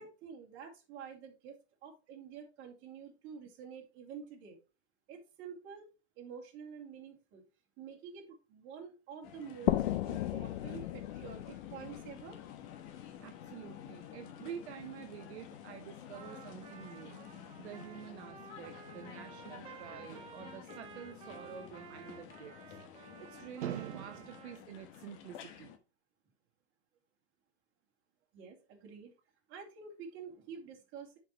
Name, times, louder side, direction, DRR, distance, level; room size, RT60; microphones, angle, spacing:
voice 1, 0.0-4.6 5.1-5.9 6.2-7.4 7.8-12.4 28.3-29.1 29.5-31.2, right 6 dB, 35° right, 1 dB, 2.5 m, -48 dB
sound 1, 9.2-25.8, left 10 dB, 35° left, 1.2 m, -51 dB
sound 2, 9.7-13.2, left 14 dB, 65° left, 0.7 m, -35 dB
voice 2, 13.0-25.7, right 10 dB, 65° right, 5 dB, 0.9 m, -47 dB
Trumpet, 16.1-24.6, right 8 dB, 15° right, 0.5 m, -53 dB
10.5 x 4.8 x 3.0 m, 0.30 s
hypercardioid pair, 130°, 34 cm